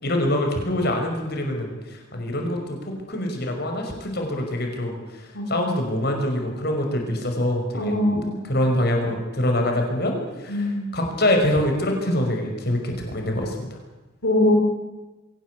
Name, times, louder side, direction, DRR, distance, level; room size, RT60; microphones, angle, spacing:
voice 1, 0.0-8.0 8.4-13.7, left 1 dB, 55° left, 2 dB, 5.6 m, -25 dB
voice 2, 7.7-8.4 10.5-11.0 14.2-14.5, left 1 dB, 85° left, 1 dB, 4.4 m, -22 dB
23.5 x 18.0 x 8.4 m, 1.1 s
head